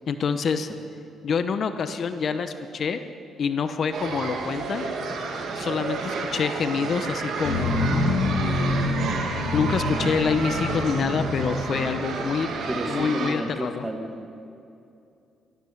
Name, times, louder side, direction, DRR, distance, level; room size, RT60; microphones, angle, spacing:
voice 1, 0.1-0.7 1.2-3.0 3.4-4.9 5.5-8.9 9.5-12.5 12.9-13.9, left 6 dB, 55° left, 9 dB, 0.8 m, -26 dB
sound 1, 3.9-13.3, right 4 dB, 70° right, 2.0 m, -31 dB
sound 2, 7.4-12.7, left 1 dB, 85° left, 4.9 m, -28 dB
voice 2, 12.7-14.3, right 1 dB, 15° right, 5 dB, 1.7 m, -32 dB
13.5 x 12.0 x 8.4 m, 2.6 s
cardioid pair, 90°, 0 cm